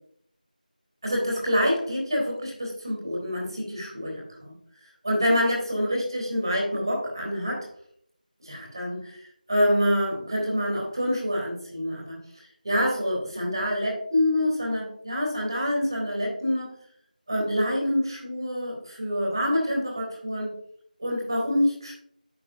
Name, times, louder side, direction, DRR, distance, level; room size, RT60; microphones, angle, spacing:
voice 1, 1.0-4.5 5.0-7.7 8.4-9.2 9.5-12.2 12.6-16.7 17.3-20.6 21.0-21.9, equal, 30° right, -2 dB, 3.4 m, -26 dB
10.5 x 7.4 x 2.7 m, 0.66 s
figure-of-eight pair, 180°, 5 cm